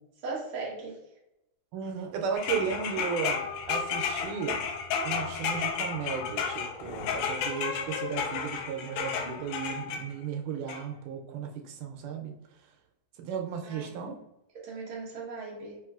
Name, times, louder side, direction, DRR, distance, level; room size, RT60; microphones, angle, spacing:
voice 1, 0.2-1.0 13.6-13.9 14.5-15.8, right 3 dB, 65° right, -3 dB, 1.0 m, -38 dB
voice 2, 1.7-4.6 5.0-12.3 13.2-14.2, right 7 dB, 90° right, 3 dB, 2.2 m, -35 dB
sound 1, 2.3-10.0 10.7-10.8, left 6 dB, 80° left, 2.0 m, -32 dB
5.2 x 3.1 x 2.4 m, 0.88 s
omnidirectional pair, 3.6 m